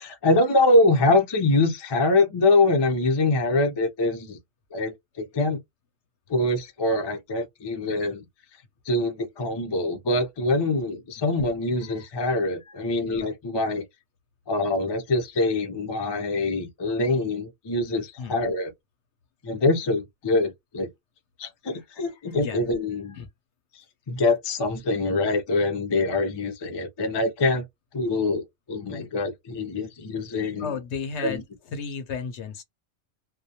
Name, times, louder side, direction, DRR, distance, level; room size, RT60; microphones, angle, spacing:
voice 1, 0.1-4.4 4.7-5.6 6.3-8.2 8.9-13.8 14.5-18.7 19.4-20.9 21.4-23.2 24.1-27.6 27.9-30.7 31.2-31.4, left 2 dB, 35° left, 0.4 m, -24 dB
voice 2, 11.8-12.9 18.2-18.4 21.7-22.6 23.1-23.3 30.6-32.6, left 5 dB, 65° left, 0.8 m, -35 dB
2.2 x 2.2 x 2.7 m
omnidirectional pair, 1.4 m